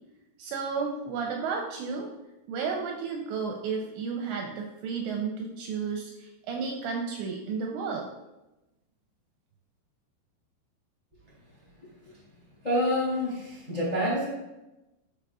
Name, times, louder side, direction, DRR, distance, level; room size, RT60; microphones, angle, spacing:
voice 1, 0.4-2.1 2.5-8.1, right 5 dB, 85° right, 1 dB, 2.6 m, -32 dB
voice 2, 12.6-14.3, equal, 25° left, -6 dB, 1.0 m, -27 dB
11.5 x 4.8 x 2.4 m, 0.96 s
omnidirectional pair, 5.6 m